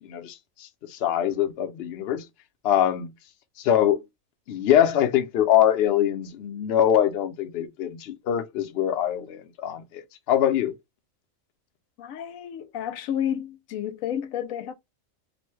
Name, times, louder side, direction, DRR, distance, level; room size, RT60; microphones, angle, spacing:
voice 1, 0.9-2.2 2.6-3.1 3.6-4.0 4.5-10.0 10.3-10.7, left 10 dB, 60° left, 0.7 m, -23 dB
voice 2, 12.0-14.7, left 9 dB, 85° left, 1.0 m, -31 dB
3.0 x 2.1 x 3.1 m
omnidirectional pair, 1.4 m